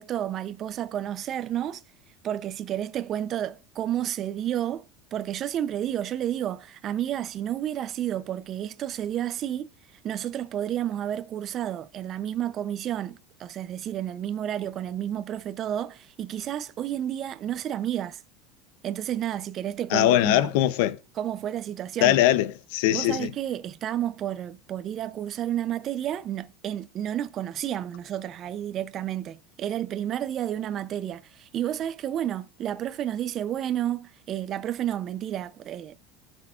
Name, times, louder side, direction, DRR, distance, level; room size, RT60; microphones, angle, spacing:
voice 1, 0.0-1.8 2.2-4.9 5.1-9.7 10.0-18.2 18.8-20.5 21.2-22.2 22.9-36.0, right 11 dB, 35° right, 0.6 m, -31 dB
voice 2, 19.9-21.0 22.0-23.3, left 14 dB, 75° left, 0.6 m, -21 dB
15.5 x 6.3 x 2.5 m
supercardioid pair, 145°, 0 cm